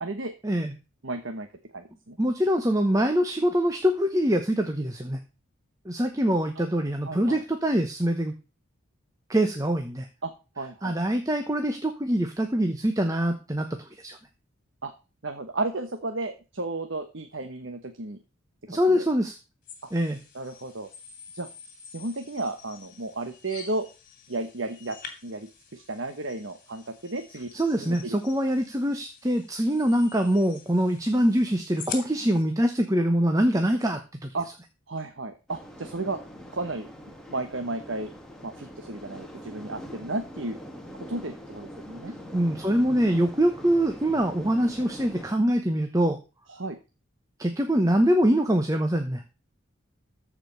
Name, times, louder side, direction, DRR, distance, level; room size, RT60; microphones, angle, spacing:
voice 1, 0.0-0.3 1.0-1.5 1.7-2.2 7.0-7.4 10.2-10.3 10.6-11.0 14.8-14.9 15.2-18.2 18.7-19.1 19.8-19.9 20.3-20.9 21.3-21.5 21.9-23.9 24.3-25.0 25.2-27.5 27.8-28.2 34.3-34.5 34.9-36.2 36.5-36.9 37.3-38.1 38.4-40.6 41.1-42.1 46.5-46.8, right 2 dB, 65° right, 6 dB, 1.2 m, -33 dB
voice 2, 2.2-5.2 5.9-8.3 9.3-10.1 10.8-13.7 14.0-14.2 18.7-19.3 19.9-20.2 27.5-34.3 42.3-46.2 47.4-49.2, equal, 15° right, 5 dB, 1.0 m, -24 dB
sound 1, 19.7-32.4, left 6 dB, 40° left, 2.8 m, -46 dB
sound 2, 35.5-45.3, equal, 5° left, 1.7 m, -43 dB
14.0 x 5.1 x 6.7 m, 0.31 s
head